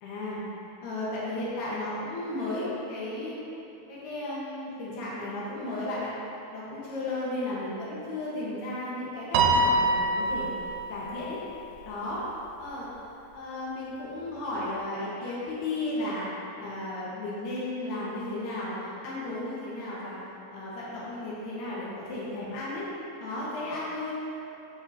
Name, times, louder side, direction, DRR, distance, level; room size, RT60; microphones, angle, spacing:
voice 1, 0.0-0.4 0.8-3.4 3.9-6.1 6.5-10.5 10.9-11.4 11.9-12.2 12.6-12.9 13.3-16.3 16.6-18.8 19.0-20.2 20.5-22.9 23.2-24.1, left 2 dB, 90° left, -7 dB, 3.3 m, -34 dB
Piano, 9.3-11.8, right 2 dB, 85° right, 2.5 m, -25 dB
7.9 x 7.7 x 2.7 m, 2.8 s
omnidirectional pair, 4.5 m